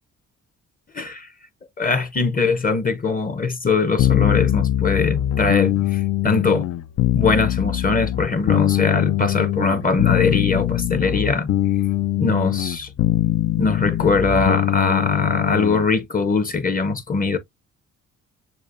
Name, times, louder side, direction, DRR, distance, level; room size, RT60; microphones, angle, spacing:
voice 1, 0.9-1.3 1.8-6.7 7.1-11.5 12.2-12.9 13.6-17.4, left 4 dB, 30° left, 0.8 m, -21 dB
sound 1, 4.0-15.9, left 13 dB, 55° left, 0.4 m, -22 dB
7.0 x 2.4 x 2.5 m
cardioid pair, 90°, 30 cm